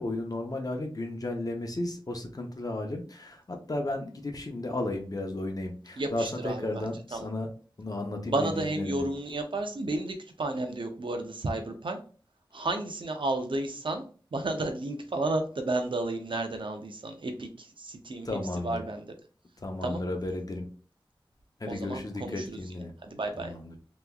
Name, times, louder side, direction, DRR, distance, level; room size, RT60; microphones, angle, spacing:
voice 1, 0.0-7.5 7.8-9.1 18.2-18.8 19.6-20.7 21.6-22.9 23.4-23.8, left 2 dB, 45° left, 3 dB, 0.8 m, -34 dB
voice 2, 6.0-7.3 8.3-12.0 12.5-14.1 14.3-19.1 19.8-20.0 21.7-22.6 23.1-23.5, right 2 dB, 70° right, 5 dB, 0.6 m, -32 dB
3.5 x 3.0 x 2.3 m, 0.38 s
wide cardioid pair, 75°, 9 cm